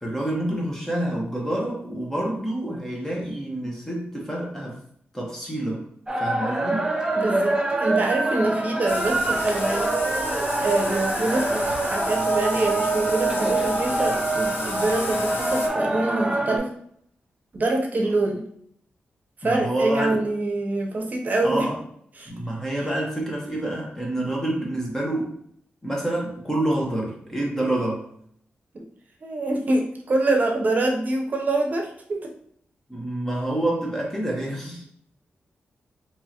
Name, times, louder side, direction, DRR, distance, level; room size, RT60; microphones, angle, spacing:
voice 1, 0.0-4.8 5.1-5.9 6.2-6.9 19.4-20.2 21.4-21.8 22.2-25.3 25.8-28.1 32.9-34.8, right 1 dB, 10° left, -3 dB, 1.0 m, -27 dB
sound 1, 6.1-16.6, right 2 dB, 20° right, 0.6 m, -25 dB
voice 2, 7.1-9.9 10.6-16.7 17.5-18.4 19.4-21.7 22.2-22.3 28.7-28.8 29.2-32.3, right 2 dB, 45° right, 1 dB, 0.8 m, -25 dB
Bathtub (filling or washing), 8.9-15.7, left 2 dB, 75° left, 0.6 m, -33 dB
3.6 x 3.0 x 2.9 m, 0.67 s
cardioid pair, 95°, 4 cm